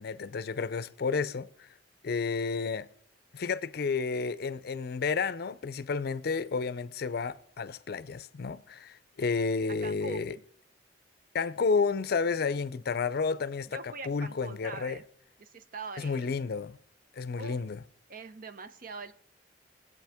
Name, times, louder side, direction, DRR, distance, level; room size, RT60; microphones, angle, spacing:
voice 1, 0.0-1.7 2.0-2.9 3.3-10.4 11.3-15.0 16.0-16.8 17.2-17.8, left 4 dB, 60° left, 0.5 m, -31 dB
voice 2, 9.8-10.4 13.7-15.0 15.4-16.3 17.4-17.6 18.1-19.1, right 3 dB, 50° right, 0.7 m, -43 dB
22.5 x 8.1 x 3.5 m
head